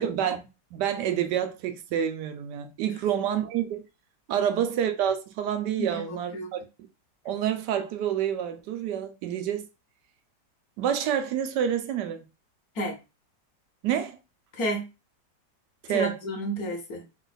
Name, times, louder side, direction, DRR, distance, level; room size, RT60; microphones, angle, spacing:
voice 1, 0.0-3.8 4.3-6.6 7.2-9.7 10.8-12.2 13.8-14.2 15.8-16.2, right 9 dB, 75° right, 1.2 m, -28 dB
voice 2, 5.8-6.5 12.7-13.0 14.6-14.9 15.9-17.0, right 1 dB, 60° left, 1.4 m, -31 dB
3.8 x 2.4 x 3.9 m
omnidirectional pair, 1.9 m